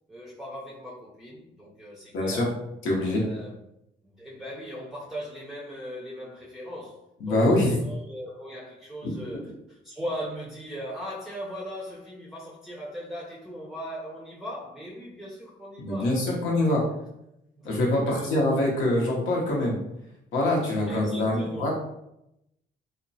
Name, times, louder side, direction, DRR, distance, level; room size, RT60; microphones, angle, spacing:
voice 1, 0.1-2.5 3.1-3.6 4.0-16.7 17.6-18.6 20.9-21.7, equal, ahead, -5 dB, 0.5 m, -39 dB
voice 2, 2.1-2.4 2.8-3.2 7.2-7.8 15.8-16.8 17.6-19.8 20.3-21.7, left 1 dB, 80° left, -2 dB, 0.9 m, -24 dB
2.8 x 2.2 x 2.6 m, 0.84 s
cardioid pair, 90°, 20 cm